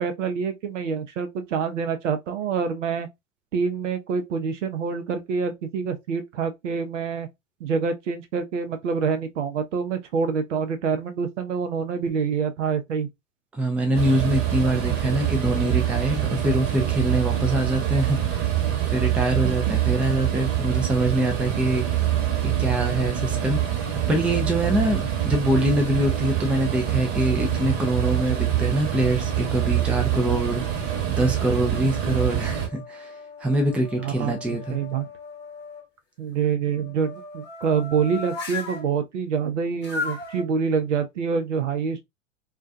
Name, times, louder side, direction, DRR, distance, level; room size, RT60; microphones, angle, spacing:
voice 1, 0.0-3.1 3.5-7.3 7.6-13.1 19.4-19.7 34.0-35.1 36.2-42.0, right 6 dB, 70° right, 0.7 m, -26 dB
voice 2, 13.5-18.4 18.9-21.8 22.4-30.6 31.1-33.1 33.4-34.8, right 1 dB, 5° right, 0.4 m, -24 dB
sound 1, 13.9-32.7, right 10 dB, 40° right, 1.1 m, -25 dB
sound 2, 30.6-31.3 31.9-35.8 36.7-38.9 39.8-40.4, left 3 dB, 30° left, 0.9 m, -37 dB
2.3 x 2.3 x 2.4 m
figure-of-eight pair, 95°, 38 cm